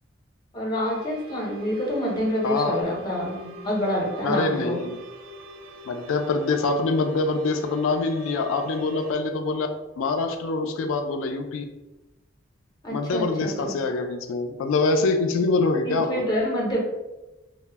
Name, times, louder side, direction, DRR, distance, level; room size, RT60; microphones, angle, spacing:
voice 1, 0.5-4.8 12.8-13.7 15.8-16.8, equal, 20° left, -4 dB, 0.6 m, -27 dB
sound 1, 0.8-9.1, right 2 dB, 85° right, 0.3 m, -44 dB
voice 2, 2.4-2.9 4.2-5.0 5.9-9.7 10.0-11.6 12.9-16.2, left 3 dB, 75° left, 5 dB, 0.3 m, -25 dB
2.0 x 2.0 x 3.3 m, 1.0 s
head